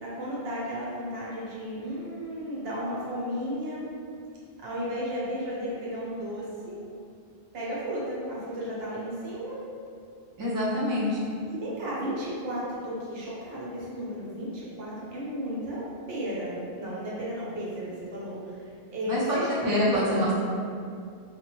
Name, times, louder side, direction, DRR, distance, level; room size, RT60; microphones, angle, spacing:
voice 1, 0.0-3.9 4.6-6.8 7.5-9.6 11.5-15.8 16.1-20.0, equal, 70° right, -7 dB, 0.9 m, -34 dB
voice 2, 10.4-11.3 19.1-20.3, equal, 35° right, -7 dB, 0.3 m, -26 dB
2.1 x 2.0 x 3.0 m, 2.3 s
omnidirectional pair, 1.0 m